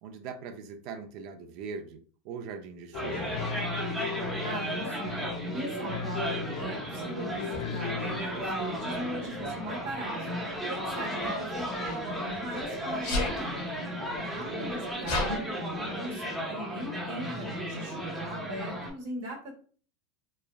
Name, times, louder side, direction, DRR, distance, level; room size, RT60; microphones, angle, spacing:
voice 1, 0.0-3.4 14.2-14.7, right 5 dB, 50° right, 8 dB, 0.4 m, -41 dB
sound 1, 2.9-8.2, left 7 dB, 80° left, 0.4 m, -37 dB
sound 2, 2.9-18.9, equal, 5° right, 0.6 m, -34 dB
voice 2, 4.4-5.2 5.5-10.4 10.6-12.1 12.4-13.6 14.3-19.5, right 1 dB, 70° right, 0 dB, 1.1 m, -39 dB
Sneeze, 7.5-7.7 8.8-9.1 11.2-12.6 13.0-13.4 14.1-14.2 14.4-15.4, left 2 dB, 60° left, 1.0 m, -33 dB
3.1 x 2.3 x 2.2 m, 0.42 s
supercardioid pair, 140°, 0 cm